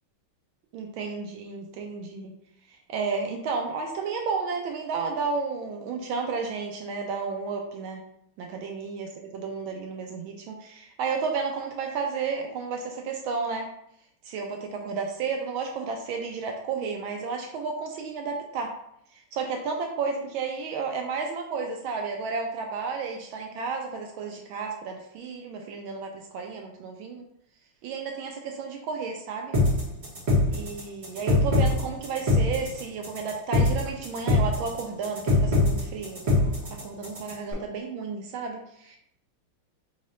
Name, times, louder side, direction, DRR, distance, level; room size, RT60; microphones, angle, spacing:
voice 1, 0.7-2.3 2.9-8.0 8.4-13.7 14.2-18.7 19.1-27.2 27.8-29.6 30.5-39.0, right 5 dB, 80° right, 2 dB, 1.3 m, -32 dB
sound 1, 29.5-37.5, left 2 dB, 35° right, 1.5 m, -23 dB
3.7 x 3.0 x 4.1 m, 0.73 s
omnidirectional pair, 2.3 m